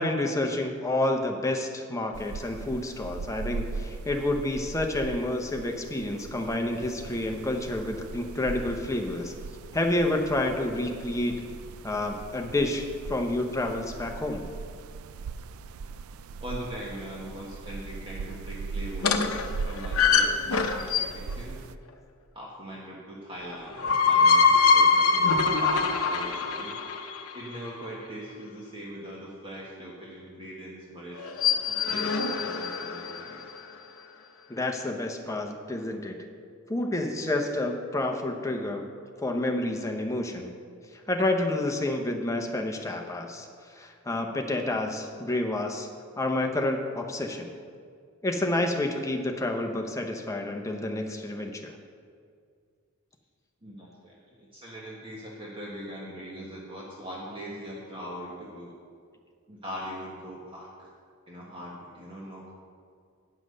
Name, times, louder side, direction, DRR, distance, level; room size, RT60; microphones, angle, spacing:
voice 1, 0.0-9.3 9.7-11.4 11.8-14.4 34.5-36.2 36.7-38.9 39.2-40.5 41.1-43.5 43.8-45.9 46.2-47.5 48.2-51.8, left 1 dB, 15° left, 3 dB, 0.8 m, -29 dB
sound 1, 2.1-21.8, right 4 dB, 75° right, 0.3 m, -39 dB
voice 2, 16.4-21.7 22.3-26.8 27.3-31.2 31.7-33.5 53.6-58.7 59.5-60.9 61.3-62.5, equal, 25° right, -5 dB, 1.2 m, -41 dB
sound 2, 19.0-21.3 23.5-27.6 31.2-33.4, left 5 dB, 75° left, 0.7 m, -23 dB
9.5 x 5.8 x 6.5 m, 2.1 s
head